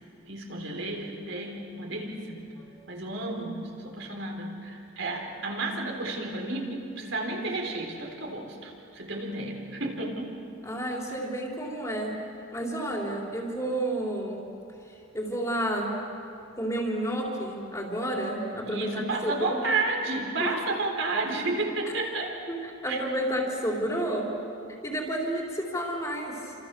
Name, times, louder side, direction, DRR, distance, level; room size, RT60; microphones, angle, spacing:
voice 1, 0.3-2.4 2.9-10.3 18.7-22.4 22.9-23.0, right 2 dB, 70° right, 1 dB, 3.9 m, -32 dB
voice 2, 10.6-12.2 12.5-14.4 15.1-16.0 16.6-19.6 20.4-20.5 22.5-24.3 24.7-26.5, right 1 dB, 15° left, -2 dB, 3.9 m, -31 dB
29.5 x 27.0 x 7.0 m, 2.7 s
head